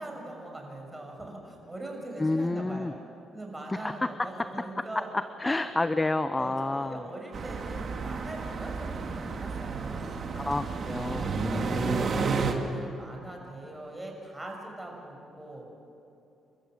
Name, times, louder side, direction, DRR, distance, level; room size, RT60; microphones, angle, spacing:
voice 1, 0.0-3.0 3.3-5.1 5.5-5.7 6.4-10.1 11.3-11.6 12.0-15.7, right 1 dB, 10° right, 0 dB, 6.4 m, -41 dB
voice 2, 2.2-2.9 3.8-4.1 4.4-4.8 5.1-7.0 10.4-12.1, left 2 dB, 20° left, 12 dB, 0.7 m, -30 dB
sound 1, 7.3-12.5, right 5 dB, 50° right, 2.4 m, -31 dB
29.0 x 14.0 x 7.9 m, 2.8 s
cardioid pair, 90°, 0 cm